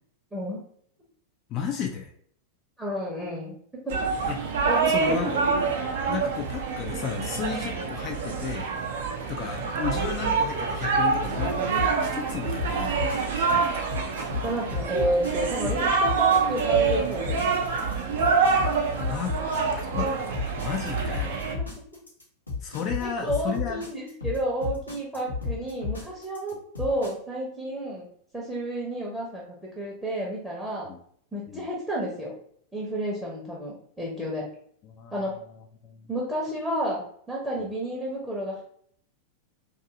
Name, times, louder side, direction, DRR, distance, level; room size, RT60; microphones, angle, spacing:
voice 1, 1.5-2.1 4.3-4.4 4.9-5.4 6.1-8.7 9.3-13.2 19.1-19.4 20.0-20.1 20.6-21.4 22.6-23.8 30.8-31.0 31.5-31.7 34.8-35.3 35.8-36.1 37.6-37.7, left 7 dB, 35° left, 2 dB, 0.3 m, -33 dB
voice 2, 2.8-3.6 3.8-4.0 4.7-5.2 14.4-17.4 21.6-21.7 23.0-28.1 28.3-30.9 31.3-32.3 32.7-34.5 35.1-35.4 36.1-38.6, equal, 5° right, -4 dB, 0.7 m, -31 dB
sound 1, 3.9-21.5, right 5 dB, 55° right, 0.4 m, -26 dB
sound 2, 11.3-27.1, left 4 dB, 80° left, 0.9 m, -32 dB
2.6 x 2.3 x 2.6 m, 0.63 s
figure-of-eight pair, 90°, 0 cm